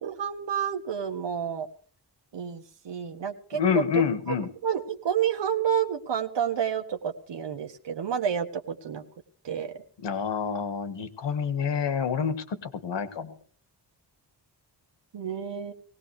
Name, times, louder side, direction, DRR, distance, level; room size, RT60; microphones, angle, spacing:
voice 1, 0.0-1.7 2.3-4.3 4.6-9.0 9.4-9.8 15.1-15.7, right 8 dB, 85° right, 5 dB, 1.6 m, -30 dB
voice 2, 3.5-4.5 10.0-13.3, left 7 dB, 85° left, 10 dB, 1.7 m, -28 dB
20.0 x 18.0 x 3.3 m, 0.43 s
wide cardioid pair, 145°, 42 cm